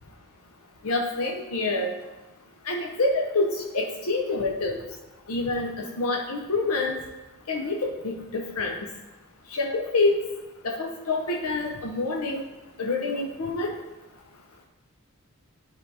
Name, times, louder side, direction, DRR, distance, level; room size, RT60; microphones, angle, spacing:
voice 1, 0.8-1.9 2.7-4.8 5.3-6.9 7.5-8.8 9.5-10.1 10.6-12.4 12.8-13.7, left 3 dB, 70° left, 1 dB, 0.7 m, -27 dB
11.0 x 3.9 x 3.3 m, 1.1 s
head